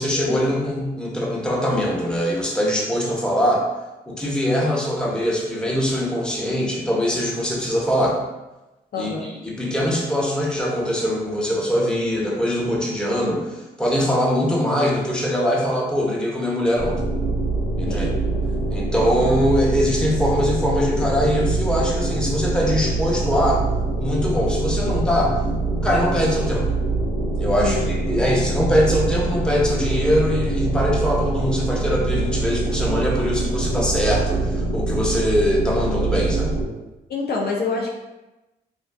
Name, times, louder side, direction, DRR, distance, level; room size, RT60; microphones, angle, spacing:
voice 1, 0.0-3.6 4.1-8.2 9.0-17.0 17.8-18.1 18.7-23.6 24.0-25.3 25.8-26.7 27.4-27.8 28.1-36.6, equal, 5° left, -4 dB, 0.7 m, -22 dB
voice 2, 8.9-9.3 17.8-18.2 27.6-27.9 37.1-37.9, left 3 dB, 55° left, -1 dB, 0.5 m, -27 dB
sound 1, 16.8-36.6, right 2 dB, 85° left, 1.0 m, -24 dB
2.5 x 2.3 x 2.2 m, 1.0 s
supercardioid pair, 50°, 19 cm